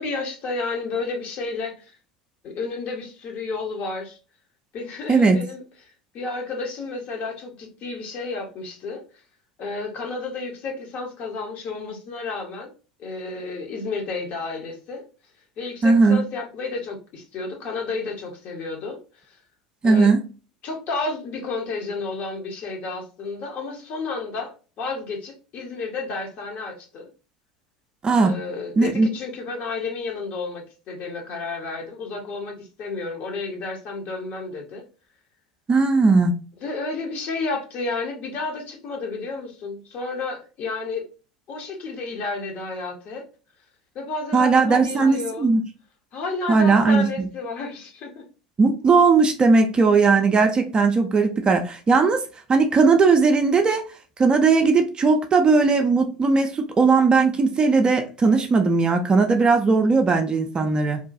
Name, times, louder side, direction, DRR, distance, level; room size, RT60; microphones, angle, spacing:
voice 1, 0.0-2.0 2.4-4.2 4.7-9.0 9.6-12.7 13.0-15.0 15.6-19.0 19.2-19.4 19.8-20.1 20.6-27.1 28.2-34.8 36.6-41.1 41.5-43.2 43.9-45.5 46.1-48.2, left 3 dB, 45° left, 0.8 m, -31 dB
voice 2, 5.1-5.4 15.8-16.2 19.8-20.2 28.0-28.3 28.8-29.1 35.7-36.3 44.3-45.6 46.5-47.3 48.6-52.2 52.5-53.8 54.2-61.0, right 4 dB, 25° right, 0.4 m, -18 dB
2.7 x 2.2 x 2.5 m
figure-of-eight pair, 70°, 4 cm